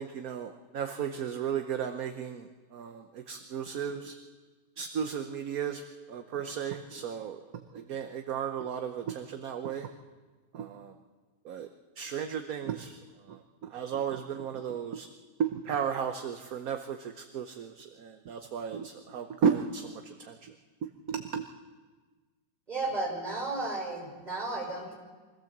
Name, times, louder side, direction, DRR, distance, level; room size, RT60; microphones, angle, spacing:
voice 1, 0.0-4.2 4.8-5.8 6.1-9.9 10.5-10.9 11.4-11.7 12.0-13.0 13.3-15.1 15.4-20.5 21.1-21.4, right 7 dB, 60° right, 6 dB, 1.3 m, -34 dB
voice 2, 22.7-24.9, right 2 dB, 25° right, -1 dB, 5.9 m, -33 dB
24.0 x 16.0 x 7.3 m, 1.4 s
omnidirectional pair, 1.9 m